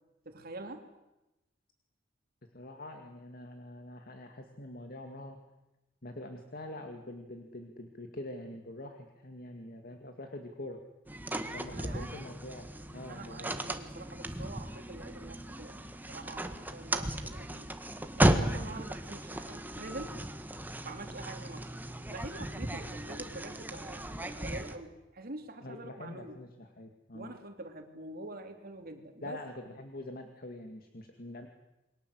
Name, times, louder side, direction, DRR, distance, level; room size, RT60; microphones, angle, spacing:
voice 1, 0.2-0.9 11.7-12.1 13.1-17.7 18.2-20.2 20.8-21.7 22.1-26.3 27.1-29.4, right 2 dB, 50° right, 5 dB, 3.2 m, -45 dB
voice 2, 2.5-5.4 6.0-10.8 11.5-13.7 25.6-27.3 29.2-31.5, left 1 dB, 50° left, 5 dB, 2.2 m, -45 dB
sound 1, 11.1-24.7, right 1 dB, 10° right, 1.7 m, -35 dB
28.5 x 23.0 x 8.1 m, 1.0 s
head